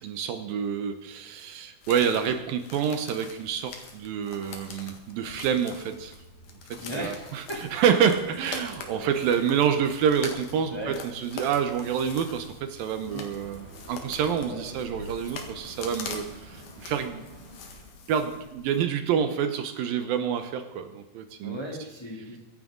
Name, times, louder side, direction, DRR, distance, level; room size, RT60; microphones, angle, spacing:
voice 1, 0.0-6.1 6.7-7.4 7.7-17.2 18.1-21.6, right 7 dB, 75° right, 8 dB, 2.6 m, -27 dB
sound 1, 1.8-18.8, left 4 dB, 60° left, 2.9 m, -44 dB
Train, 5.9-17.1, right 1 dB, 50° right, 6.2 m, -51 dB
voice 2, 6.7-7.7 9.0-9.1 9.4-9.5 10.7-11.0 13.1-13.2 14.4-14.6 15.2-15.3 21.4-22.4, equal, 10° left, -3 dB, 2.4 m, -36 dB
sound 2, 13.0-18.2, right 1 dB, 25° right, 4.7 m, -49 dB
23.5 x 11.0 x 3.8 m, 1.0 s
omnidirectional pair, 4.3 m